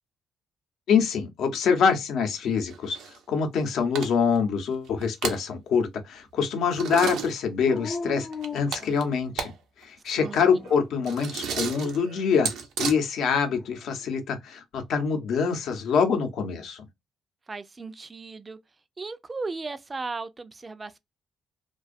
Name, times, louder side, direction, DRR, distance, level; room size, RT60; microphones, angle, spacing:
voice 1, 0.9-3.0 3.3-8.3 8.5-9.5 9.8-12.5 12.8-16.9, left 6 dB, 75° left, 0.7 m, -25 dB
sound 1, 2.7-3.2 3.6-3.7 4.0-4.4 4.9-5.4 6.7-7.3 8.3-9.5 9.8-9.9 10.2-12.9, right 6 dB, 85° right, 0.6 m, -33 dB
Dog, 7.6-9.5 10.2-11.0 13.2-14.1, left 4 dB, 45° left, 0.4 m, -39 dB
voice 2, 10.1-10.7 17.5-18.6 19.0-21.0, right 3 dB, 30° right, 0.4 m, -36 dB
2.5 x 2.3 x 2.4 m
cardioid pair, 90°, 0 cm